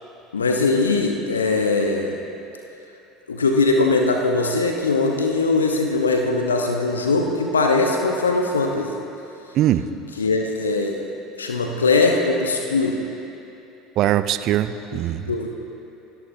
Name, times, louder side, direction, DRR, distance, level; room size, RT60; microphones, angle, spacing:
voice 1, 0.3-2.2 3.3-8.9 10.2-11.1 11.3-13.0 14.9-15.0 15.3-15.5, left 3 dB, 75° left, 2 dB, 1.0 m, -21 dB
voice 2, 9.5-9.9 14.0-15.3, right 12 dB, 45° right, 13 dB, 0.6 m, -21 dB
27.0 x 17.5 x 2.8 m, 2.9 s
figure-of-eight pair, 70°, 0 cm